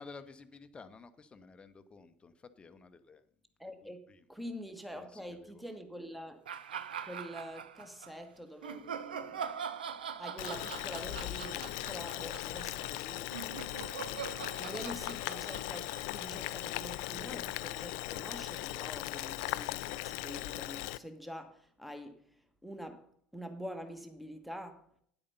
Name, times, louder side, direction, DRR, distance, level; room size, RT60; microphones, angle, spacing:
voice 1, 0.0-3.2 3.6-4.3 4.9-5.6, left 4 dB, 20° left, 0.8 m, -53 dB
voice 2, 3.6-6.4 7.0-9.6 10.2-13.3 13.9-14.1 14.4-22.2 22.6-24.8, equal, ahead, 1.3 m, -46 dB
sound 1, 6.5-8.1 8.6-16.9, right 7 dB, 75° right, 0.6 m, -43 dB
Boiling, 10.4-21.0, left 18 dB, 55° left, 0.4 m, -39 dB
9.9 x 8.6 x 5.5 m
figure-of-eight pair, 70°, 5 cm